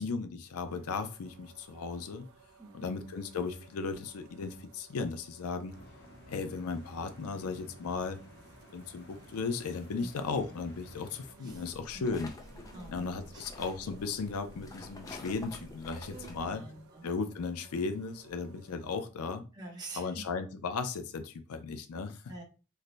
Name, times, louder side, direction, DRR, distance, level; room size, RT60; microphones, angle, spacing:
voice 1, 0.0-2.3 2.7-5.8 6.3-8.2 8.7-12.3 12.9-16.6 17.0-19.4 20.0-22.4, left 4 dB, 85° left, 9 dB, 0.4 m, -36 dB
sound 1, 0.7-19.1, right 3 dB, 70° right, 0.5 m, -58 dB
voice 2, 2.6-2.9 10.0-10.1 11.4-11.6 11.9-12.1 12.7-13.5 16.4-17.0 19.5-20.2 22.3-22.4, right 2 dB, 20° right, 0 dB, 0.7 m, -47 dB
sound 2, 5.7-11.3, left 1 dB, 50° left, 1.0 m, -54 dB
sound 3, 11.5-16.5, left 2 dB, 15° left, 0.4 m, -48 dB
3.2 x 2.1 x 3.8 m, 0.33 s
head